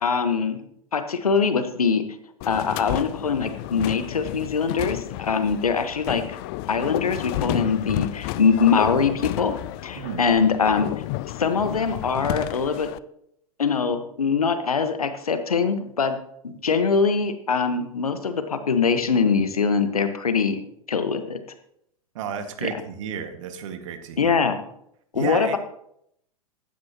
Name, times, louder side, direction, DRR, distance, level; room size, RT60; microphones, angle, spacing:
voice 1, 0.0-0.6 0.9-2.0 2.5-6.4 6.7-9.5 9.8-10.9 11.4-12.9 13.6-16.2 16.4-20.6 20.9-21.4 22.6-22.7 24.2-24.6 25.1-25.6, left 5 dB, 80° left, 9 dB, 1.4 m, -23 dB
sound 1, 2.4-13.0, left 17 dB, 40° left, 0.5 m, -31 dB
voice 2, 22.2-24.4 25.1-25.6, right 7 dB, 55° right, 7 dB, 1.9 m, -32 dB
15.5 x 11.5 x 3.0 m, 0.73 s
figure-of-eight pair, 95°, 19 cm